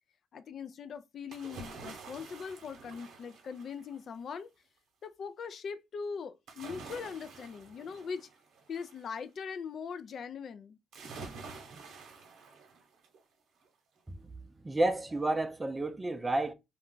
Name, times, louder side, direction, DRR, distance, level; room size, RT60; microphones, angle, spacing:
voice 1, 0.3-4.5 5.0-8.3 8.7-10.8, left 6 dB, 60° left, 0.3 m, -41 dB
sound 1, 1.3-4.1 6.5-9.1 10.9-13.2 13.6-13.7, right 4 dB, 80° right, 0.9 m, -48 dB
voice 2, 14.6-16.5, right 2 dB, 20° right, 0.4 m, -30 dB
2.4 x 2.1 x 3.7 m
cardioid pair, 90°, 0 cm